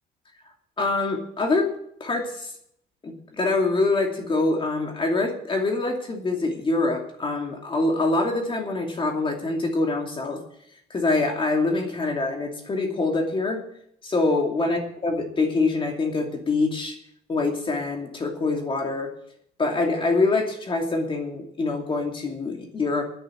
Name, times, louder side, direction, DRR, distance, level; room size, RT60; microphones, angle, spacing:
voice 1, 0.8-1.7 2.0-2.5 3.0-10.4 10.9-13.6 14.0-17.0 17.3-19.1 19.6-23.0, left 3 dB, 30° left, 2 dB, 2.6 m, -25 dB
10.0 x 9.8 x 8.4 m, 0.68 s
cardioid pair, 110°, 17 cm